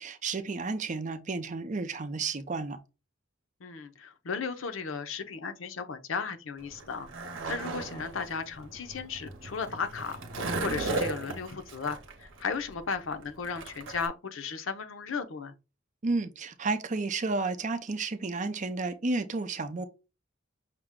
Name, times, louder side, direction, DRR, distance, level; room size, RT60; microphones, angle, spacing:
voice 1, 0.0-2.8 16.0-19.9, right 3 dB, 40° right, 0.6 m, -32 dB
voice 2, 3.6-7.1 7.5-15.5, left 5 dB, 80° left, 0.6 m, -35 dB
Skateboard, 6.6-14.1, right 3 dB, 70° right, 0.8 m, -36 dB
5.8 x 2.1 x 3.5 m
head